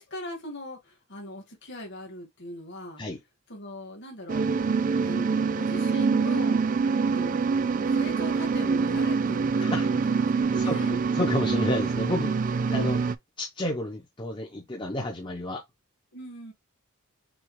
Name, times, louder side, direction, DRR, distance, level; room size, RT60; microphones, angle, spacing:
voice 1, 0.0-3.0 3.5-4.4 5.0-6.7 7.1-11.0 16.1-16.5, left 1 dB, 50° left, 1.7 m, -40 dB
sound 1, 4.3-13.1, right 5 dB, 35° right, 0.3 m, -25 dB
voice 2, 11.1-12.4 12.6-13.0 13.4-15.6, left 1 dB, 20° left, 0.8 m, -30 dB
6.2 x 2.4 x 3.1 m
head